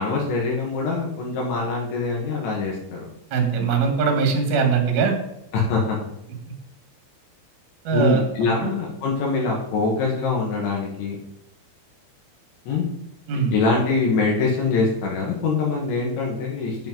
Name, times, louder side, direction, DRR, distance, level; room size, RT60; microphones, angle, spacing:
voice 1, 0.0-3.1 5.5-6.0 7.9-11.2 12.7-12.9 13.3-16.8, left 3 dB, 70° left, -2 dB, 3.7 m, -23 dB
voice 2, 3.3-5.2 7.8-8.2 8.6-8.7 13.3-13.5, right 5 dB, 55° right, 4 dB, 2.7 m, -21 dB
10.0 x 7.5 x 4.0 m, 0.87 s
omnidirectional pair, 5.7 m